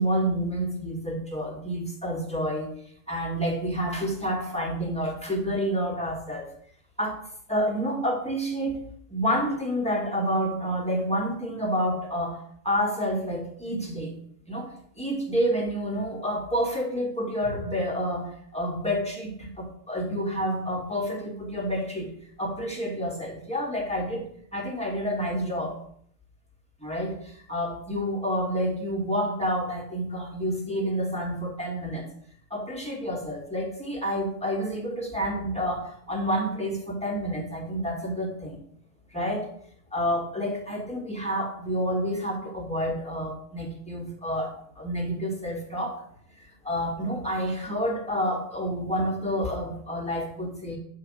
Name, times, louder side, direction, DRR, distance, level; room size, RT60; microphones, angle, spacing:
voice 1, 0.0-2.7 3.1-6.5 7.0-7.2 7.5-8.8 9.1-12.4 12.6-14.1 14.5-14.7 15.0-22.1 22.4-25.8 26.8-32.1 32.5-38.6 39.1-39.5 39.9-46.0 46.6-50.8, equal, 5° left, -2 dB, 2.4 m, -29 dB
10.5 x 5.7 x 6.6 m, 0.64 s
omnidirectional pair, 1.3 m